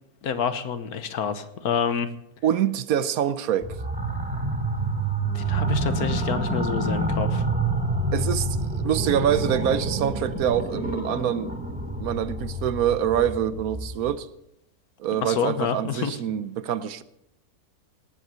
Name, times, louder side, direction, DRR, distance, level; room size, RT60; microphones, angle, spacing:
voice 1, 0.2-2.1 5.3-7.4 15.2-16.2, left 7 dB, 75° left, 1.5 m, -28 dB
voice 2, 2.4-3.8 8.1-8.5 8.8-11.6 12.0-14.3 15.0-17.0, right 9 dB, 70° right, 1.1 m, -25 dB
sound 1, 3.6-14.1, right 2 dB, 5° right, 2.6 m, -28 dB
18.0 x 7.7 x 6.7 m
omnidirectional pair, 1.6 m